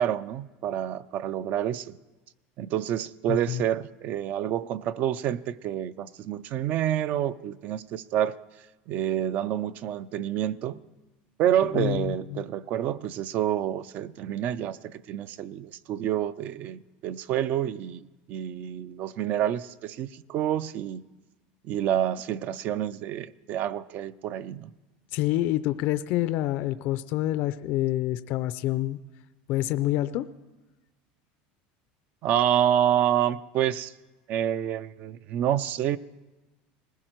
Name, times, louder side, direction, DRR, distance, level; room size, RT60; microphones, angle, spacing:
voice 1, 0.0-1.9 2.6-8.4 8.9-10.8 11.4-21.0 21.7-24.7 32.2-33.9 34.3-36.0, right 11 dB, 40° right, 0.4 m, -28 dB
voice 2, 3.3-3.6 11.7-12.4 25.1-29.0 29.5-30.3, left 14 dB, 50° left, 0.4 m, -27 dB
20.0 x 15.5 x 4.5 m
cardioid pair, 160°, 4 cm